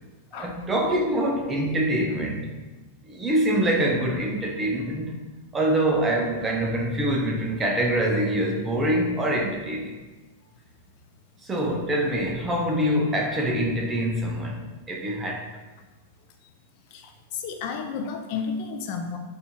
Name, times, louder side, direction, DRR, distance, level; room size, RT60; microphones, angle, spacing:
voice 1, 0.3-2.5 3.1-5.2 5.5-9.9 11.4-15.4, right 1 dB, 15° right, 1 dB, 0.4 m, -25 dB
voice 2, 16.9-19.2, left 5 dB, 45° left, 5 dB, 0.4 m, -32 dB
4.2 x 2.4 x 4.2 m, 1.2 s
supercardioid pair, 160°, 0 cm